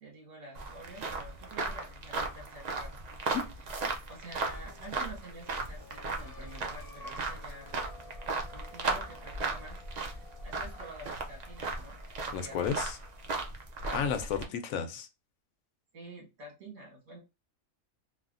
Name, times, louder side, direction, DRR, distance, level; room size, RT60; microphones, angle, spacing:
voice 1, 0.0-2.9 3.2-3.4 4.1-7.7 8.5-9.8 10.1-12.0 12.2-12.7 13.8-14.3 15.9-17.2, right 1 dB, 80° right, 1.8 m, -48 dB
sound 1, 0.5-14.4, right 3 dB, 65° right, 0.4 m, -36 dB
sound 2, 4.1-13.6, left 2 dB, 50° left, 0.8 m, -54 dB
voice 2, 12.3-13.0 13.9-15.1, left 7 dB, 75° left, 1.0 m, -32 dB
3.3 x 2.1 x 2.5 m
omnidirectional pair, 1.4 m